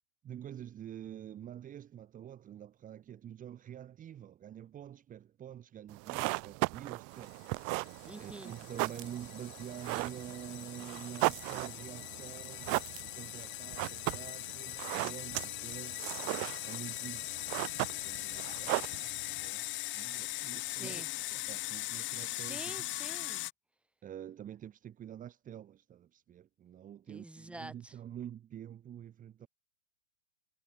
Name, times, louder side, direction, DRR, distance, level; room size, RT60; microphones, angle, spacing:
voice 1, 0.2-7.9 8.2-12.8 13.0-16.3 16.6-21.0 21.3-22.9 24.0-29.5, right 10 dB, 20° right, 2.4 m, -47 dB
sound 1, 5.9-19.5, right 32 dB, 35° right, 2.0 m, -37 dB
sound 2, 7.4-23.5, left 18 dB, 30° left, 1.9 m, -41 dB
voice 2, 8.1-8.5 20.7-21.1 22.0-23.5 27.1-28.0, right 1 dB, 5° right, 3.9 m, -47 dB
hypercardioid pair, 125°, 38 cm